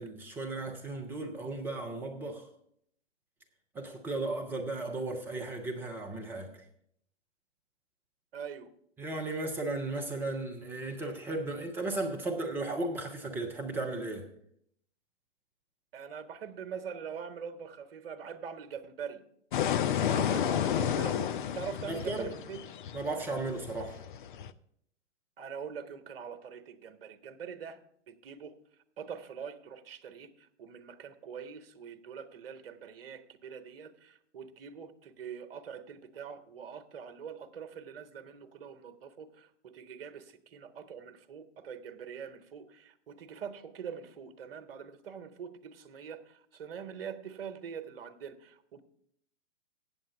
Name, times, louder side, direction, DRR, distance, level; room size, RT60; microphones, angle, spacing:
voice 1, 0.0-2.5 3.7-6.5 9.0-14.3 21.9-22.3 22.9-24.0, right 2 dB, 5° right, 2 dB, 0.4 m, -35 dB
voice 2, 8.3-8.7 15.9-19.2 20.0-22.6 25.4-27.8 28.1-28.5 29.0-48.8, right 7 dB, 50° right, 10 dB, 1.0 m, -44 dB
sound 1, 19.5-24.5, left 9 dB, 45° left, 0.5 m, -31 dB
8.5 x 7.8 x 6.9 m, 0.71 s
figure-of-eight pair, 115°, 36 cm